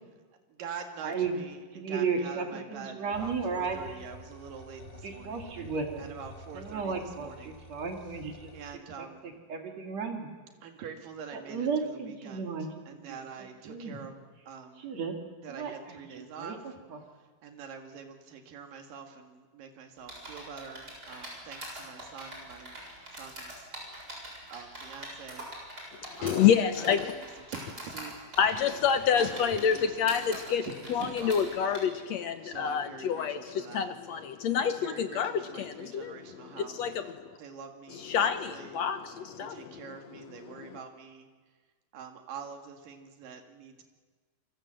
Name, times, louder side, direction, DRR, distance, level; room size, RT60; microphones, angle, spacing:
voice 1, 0.5-5.5 6.0-7.6 8.5-9.2 10.6-14.9 15.4-16.8 17.4-22.8 23.1-23.7 24.5-25.5 26.2-26.5 26.9-28.1 29.1-31.8 32.4-33.9 34.7-36.8 37.4-38.8 39.4-41.3 41.9-43.8, right 6 dB, 70° right, 5 dB, 3.6 m, -45 dB
voice 2, 1.0-1.3 1.7-4.0 5.0-6.1 6.5-8.5 9.0-10.3 11.3-12.7 13.1-13.2 13.7-14.0 14.8-15.2 15.5-15.7 16.2-16.5, right 5 dB, 50° right, 3 dB, 3.1 m, -34 dB
sound 1, 3.1-8.8, left 1 dB, 30° left, 1.0 m, -49 dB
sound 2, 20.1-31.8, right 1 dB, 25° right, 7.5 m, -43 dB
voice 3, 26.2-27.1 28.4-30.6 30.9-37.3 38.0-39.8 40.5-40.6, left 7 dB, 70° left, 9 dB, 1.7 m, -28 dB
27.5 x 24.5 x 7.8 m, 1.4 s
omnidirectional pair, 4.1 m